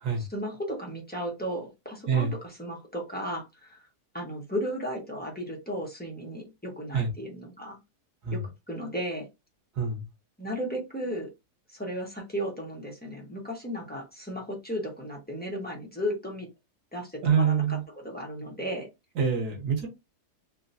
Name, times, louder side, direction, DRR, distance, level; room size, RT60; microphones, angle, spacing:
voice 1, 0.2-3.8 4.1-7.8 8.3-8.4 8.7-9.3 10.4-11.3 11.7-16.5 16.9-18.9, equal, 5° left, 1.0 m, -35 dB
voice 2, 17.2-17.8 19.2-19.9, right 6 dB, 85° right, 1.7 m, -25 dB
3.7 x 2.9 x 2.6 m
omnidirectional pair, 1.6 m